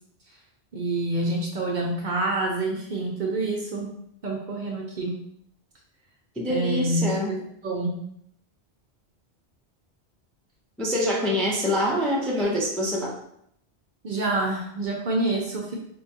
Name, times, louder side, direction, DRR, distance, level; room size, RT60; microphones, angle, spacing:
voice 1, 0.7-3.9 4.2-5.2 6.5-8.0 14.0-15.8, right 2 dB, 55° right, -1 dB, 0.6 m, -27 dB
voice 2, 6.4-7.3 10.8-13.1, left 1 dB, ahead, -3 dB, 0.4 m, -25 dB
4.5 x 2.3 x 2.7 m, 0.71 s
omnidirectional pair, 1.1 m